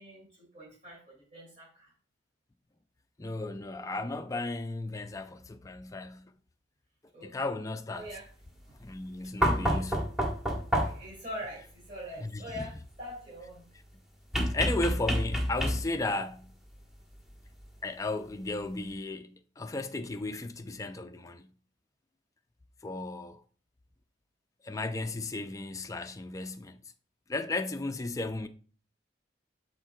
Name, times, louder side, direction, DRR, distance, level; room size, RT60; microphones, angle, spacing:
voice 1, 0.0-1.9 7.1-7.5 7.9-8.3 9.4-9.8 10.8-13.7, equal, 40° right, 2.9 m, -44 dB
voice 2, 3.2-6.3 7.2-8.1 8.8-10.0 12.2-12.6 14.5-16.5 17.8-21.5 22.8-23.4 24.6-26.8 27.3-28.5, left 2 dB, 15° left, 0.4 m, -35 dB
sound 1, 9.4-11.2 14.3-16.1 17.6-17.7, equal, ahead, 1.3 m, -28 dB
12.0 x 4.4 x 2.3 m
head